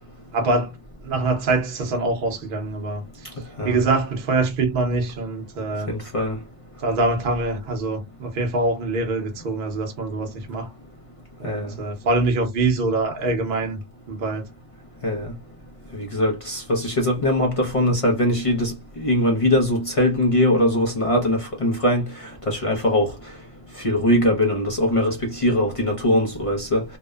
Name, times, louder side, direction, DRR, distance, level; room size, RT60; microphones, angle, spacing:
voice 1, 0.3-0.7 1.0-3.0 3.6-5.9 6.8-10.7 11.4-13.8 14.1-14.4, right 2 dB, 50° right, 0.8 m, -24 dB
voice 2, 5.9-6.4 11.4-11.7 15.0-15.3 15.9-22.0 22.5-23.1 23.8-26.8, left 1 dB, 45° left, 0.4 m, -21 dB
2.8 x 2.0 x 2.2 m
omnidirectional pair, 1.4 m